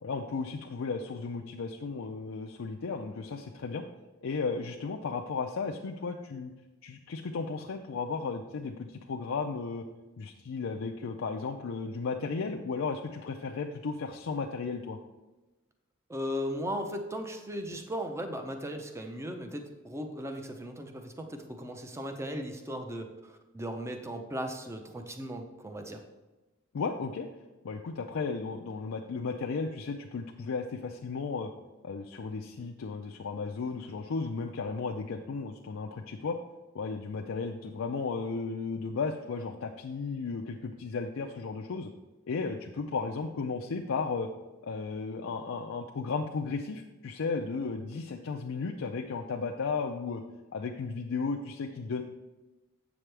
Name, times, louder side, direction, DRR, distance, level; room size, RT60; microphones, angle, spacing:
voice 1, 0.0-3.8 4.2-6.5 6.8-9.8 10.2-15.0 26.7-27.3 27.6-31.5 31.8-36.4 36.7-41.9 42.3-44.3 44.6-50.2 50.5-52.0, left 4 dB, 75° left, 1 dB, 0.4 m, -34 dB
voice 2, 16.1-26.0, equal, 15° right, 5 dB, 0.6 m, -37 dB
7.7 x 6.0 x 3.3 m, 1.1 s
head